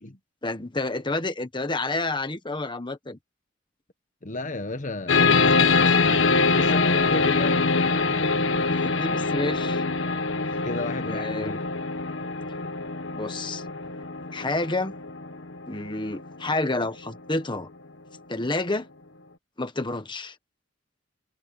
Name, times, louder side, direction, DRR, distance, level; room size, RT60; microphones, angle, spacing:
voice 1, 0.4-3.2 7.2-7.3 8.7-9.8 10.5-10.6 11.1-11.6 13.1-13.6 14.3-14.9 15.7-17.7 18.3-18.9 19.6-20.3, left 2 dB, 25° left, 1.4 m, -29 dB
voice 2, 4.2-8.1 10.6-11.7, left 2 dB, 40° left, 1.3 m, -34 dB
sound 1, 5.1-16.3, left 4 dB, 70° left, 1.5 m, -24 dB
head